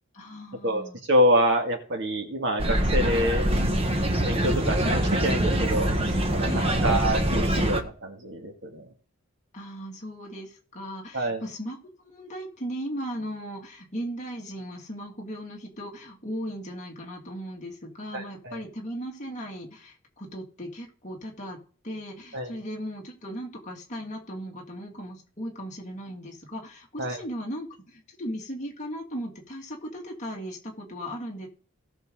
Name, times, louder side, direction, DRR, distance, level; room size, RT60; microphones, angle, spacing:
voice 1, 0.1-1.0 6.5-6.9 9.5-11.8 12.0-21.6 21.8-31.5, equal, 35° left, -1 dB, 2.4 m, -37 dB
voice 2, 1.1-3.5 4.2-8.9 11.1-11.4 18.1-18.6 22.3-22.5 27.0-27.2, equal, 55° right, 2 dB, 2.2 m, -26 dB
sound 1, 2.6-7.8, right 1 dB, 25° right, 1.1 m, -24 dB
17.5 x 6.4 x 3.8 m, 0.42 s
head